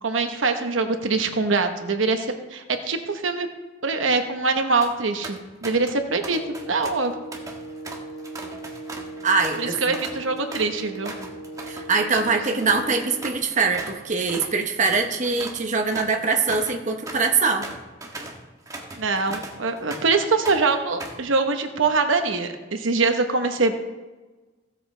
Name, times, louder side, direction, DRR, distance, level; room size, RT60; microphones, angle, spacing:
voice 1, 0.0-3.5 3.8-7.1 9.6-11.1 19.0-23.7, right 3 dB, 90° right, 6 dB, 1.0 m, -23 dB
sound 1, 4.6-4.9 5.2-6.0 6.2-14.0 14.3-14.5 14.8-20.2 20.5-21.3, right 2 dB, 20° right, 1.2 m, -39 dB
sound 2, 6.3-13.3, right 1 dB, 90° left, 1.6 m, -39 dB
voice 2, 9.2-9.8 11.7-17.7, right 4 dB, 40° right, 4 dB, 0.9 m, -23 dB
16.0 x 7.7 x 3.2 m, 1.2 s
head